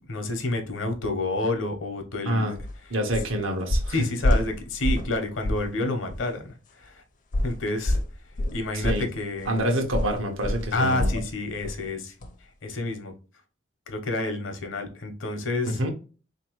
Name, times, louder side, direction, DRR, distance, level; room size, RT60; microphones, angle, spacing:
voice 1, 0.1-2.4 3.9-7.0 7.4-8.0 8.5-9.5 10.7-12.1 12.6-13.1 13.9-15.8, left 2 dB, 70° left, 0.9 m, -29 dB
sound 1, 2.6-2.7 3.1-3.4 3.7-5.2 5.4-5.7 6.1-6.2 7.3-11.3 11.6-11.9 12.2-12.3, left 1 dB, 40° left, 0.5 m, -27 dB
voice 2, 2.9-4.0 8.7-9.1 9.5-11.2 15.6-15.9, equal, 90° right, 0.9 m, -27 dB
3.8 x 2.9 x 3.0 m
head